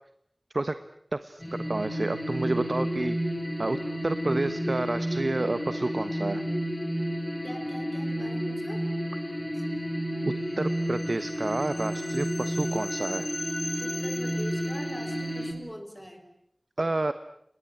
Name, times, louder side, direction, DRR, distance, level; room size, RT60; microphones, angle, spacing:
voice 1, 1.1-3.2 3.6-6.4 9.2-9.3 10.3-13.3 16.8-17.1, right 2 dB, 70° right, 11 dB, 1.2 m, -30 dB
sound 1, 1.4-15.5, equal, 30° left, 5.2 m, -31 dB
voice 2, 7.4-8.8 13.8-16.2, equal, 5° left, 4 dB, 6.1 m, -42 dB
28.5 x 21.0 x 9.4 m, 0.72 s
wide cardioid pair, 45°, 0 cm